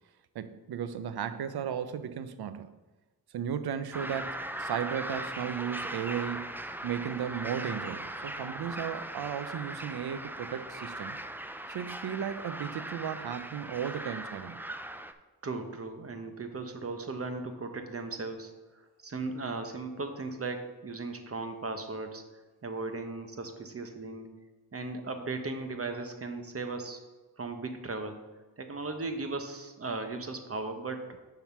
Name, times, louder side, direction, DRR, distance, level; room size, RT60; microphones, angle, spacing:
voice 1, 0.3-2.7 3.3-6.5 6.8-11.2 11.7-14.6, right 8 dB, 80° right, 12 dB, 0.6 m, -35 dB
sound 1, 3.9-15.1, right 1 dB, 5° right, 0.4 m, -39 dB
voice 2, 15.4-22.2 22.6-24.3 24.7-27.0 27.4-28.2 28.6-31.2, right 3 dB, 35° right, 6 dB, 0.9 m, -37 dB
7.0 x 3.9 x 5.9 m, 1.2 s
cardioid pair, 75°, 38 cm